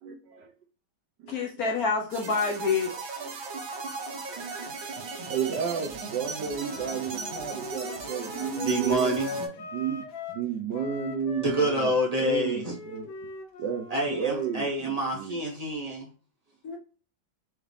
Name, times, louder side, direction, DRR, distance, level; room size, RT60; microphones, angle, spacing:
voice 1, 0.0-0.5 1.2-1.4 2.4-2.5 3.2-3.4 5.3-9.2 9.6-13.1 13.6-15.4, right 7 dB, 70° right, 1.3 m, -33 dB
voice 2, 1.3-3.2 16.6-16.8, left 4 dB, 60° left, 1.0 m, -28 dB
sound 1, 2.1-9.5, right 4 dB, 85° right, 1.8 m, -37 dB
Wind instrument woodwind instrument, 6.5-10.5 10.7-14.7, left 4 dB, 80° left, 1.6 m, -41 dB
voice 3, 8.6-9.5 11.4-12.7 13.9-16.1, right 1 dB, 25° right, 0.9 m, -27 dB
4.8 x 2.8 x 3.3 m
omnidirectional pair, 2.1 m